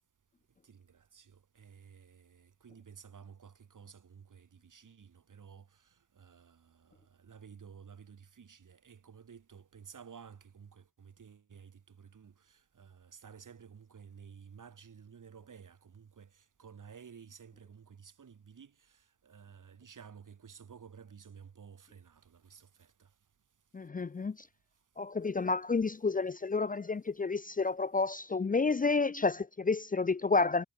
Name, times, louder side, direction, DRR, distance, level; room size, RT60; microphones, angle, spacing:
voice 1, 0.6-23.1, right 7 dB, 65° right, 5.9 m, -54 dB
voice 2, 23.7-24.5 25.0-30.6, left 4 dB, 25° left, 0.6 m, -30 dB
wide cardioid pair, 95°, 34 cm